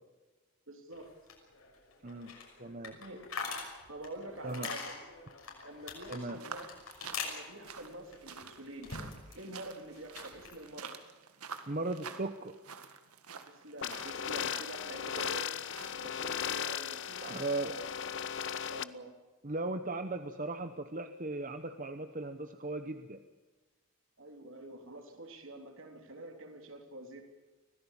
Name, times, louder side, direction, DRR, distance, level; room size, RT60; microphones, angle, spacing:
voice 1, 0.7-1.1 3.0-3.2 3.9-5.0 5.6-6.7 7.2-8.9 9.3-11.0 13.5-15.5 16.0-17.8 18.5-19.2 24.2-27.2, right 1 dB, 65° right, 4 dB, 3.4 m, -47 dB
sound 1, 0.9-9.5 9.7-10.6, left 5 dB, 70° left, 6.1 m, -44 dB
voice 2, 2.6-3.0 4.4-4.7 6.1-6.4 11.7-12.6 17.2-17.7 19.4-23.2, right 2 dB, 35° right, 8 dB, 0.9 m, -37 dB
sound 2, 6.3-16.3, right 6 dB, 90° right, 1.8 m, -49 dB
sound 3, 13.8-18.8, left 8 dB, 55° left, 0.7 m, -37 dB
25.0 x 17.5 x 7.3 m, 1.2 s
head